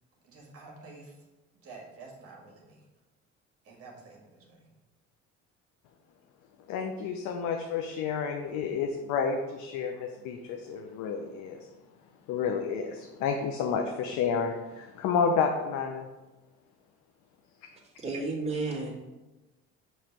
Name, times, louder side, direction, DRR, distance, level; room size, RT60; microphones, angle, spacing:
voice 1, 0.2-1.3 1.6-2.8 3.6-4.7, right 3 dB, 50° right, -2 dB, 1.9 m, -49 dB
voice 2, 6.7-11.7 12.3-16.1, left 6 dB, 75° left, 3 dB, 0.7 m, -30 dB
voice 3, 18.0-18.9, right 3 dB, 20° right, -4 dB, 2.1 m, -32 dB
6.4 x 3.2 x 6.0 m, 1.1 s
supercardioid pair, 95°, 29 cm